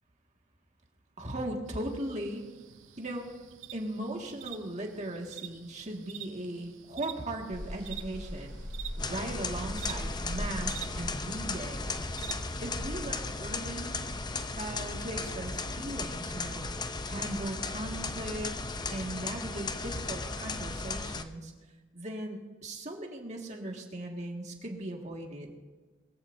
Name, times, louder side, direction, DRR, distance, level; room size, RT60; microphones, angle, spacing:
voice 1, 1.2-2.5 3.0-3.3 3.7-8.6 9.0-11.9 12.6-14.0 14.5-16.7 17.1-18.5 18.9-21.5 21.9-25.5, right 1 dB, 35° right, 1 dB, 1.9 m, -38 dB
sound 1, 1.7-13.1, right 11 dB, 70° right, 0.7 m, -48 dB
sound 2, 7.5-13.8, equal, 60° left, 5.1 m, -41 dB
sound 3, 9.0-21.2, left 3 dB, 20° left, 0.6 m, -36 dB
22.0 x 15.0 x 2.7 m, 1.3 s
head